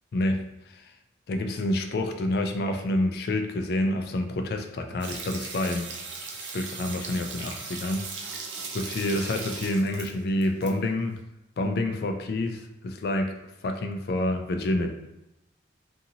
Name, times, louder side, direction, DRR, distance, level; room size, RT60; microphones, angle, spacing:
voice 1, 1.3-5.9 6.4-11.2 11.6-13.3 13.6-14.9, left 1 dB, 55° left, 5 dB, 0.3 m, -28 dB
sound 1, 5.0-10.7 11.0-11.1, right 4 dB, 85° right, 0.5 m, -38 dB
2.7 x 2.6 x 2.7 m, 0.90 s
head